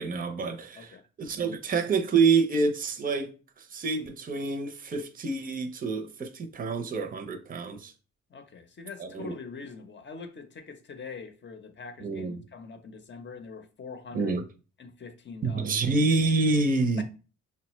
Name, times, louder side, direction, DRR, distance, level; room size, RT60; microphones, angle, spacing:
voice 1, 0.0-0.9 1.2-3.3 3.6-7.9 9.0-9.3 12.0-12.4 14.1-14.4 15.4-17.0, right 4 dB, 30° right, 0.6 m, -27 dB
voice 2, 8.3-14.4 14.8-15.7 17.0-17.1, left 5 dB, 35° left, 0.7 m, -43 dB
5.6 x 2.2 x 3.0 m
cardioid pair, 90°, 30 cm